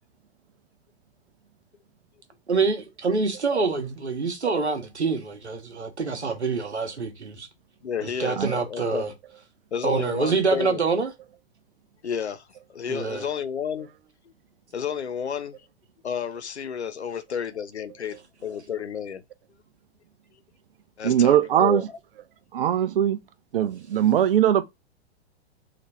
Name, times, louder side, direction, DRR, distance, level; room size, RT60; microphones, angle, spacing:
voice 1, 2.5-7.5 8.0-9.1 9.8-11.1 12.9-13.2, right 4 dB, 85° right, 0.9 m, -26 dB
voice 2, 7.8-9.0 9.7-10.8 12.0-13.9 14.7-15.6 16.0-18.2 18.4-19.2 21.0-22.0, left 7 dB, 80° left, 0.6 m, -31 dB
voice 3, 21.0-21.8 22.5-23.2 23.5-24.6, right 10 dB, 60° right, 0.5 m, -20 dB
2.9 x 2.5 x 4.1 m
figure-of-eight pair, 100°, 33 cm